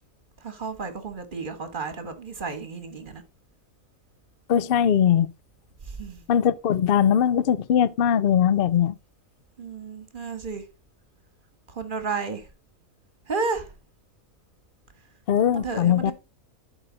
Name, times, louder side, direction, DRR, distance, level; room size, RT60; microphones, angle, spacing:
voice 1, 0.4-3.2 5.8-6.2 9.6-10.6 11.7-12.5 13.3-13.7 15.4-16.1, right 4 dB, 35° right, 1.5 m, -32 dB
voice 2, 4.5-5.3 6.3-9.0 15.3-16.1, left 9 dB, 70° left, 0.5 m, -20 dB
12.0 x 5.0 x 3.9 m
omnidirectional pair, 1.5 m